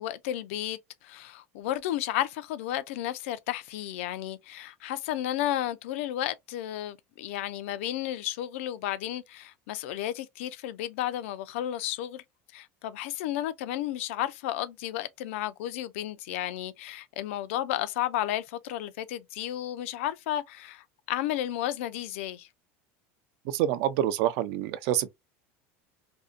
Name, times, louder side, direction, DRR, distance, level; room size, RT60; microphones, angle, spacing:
voice 1, 0.0-12.2 12.5-22.5, left 13 dB, 85° left, 0.4 m, -33 dB
voice 2, 23.5-25.1, right 12 dB, 60° right, 0.4 m, -27 dB
2.6 x 2.1 x 2.3 m
cardioid pair, 160°, 7 cm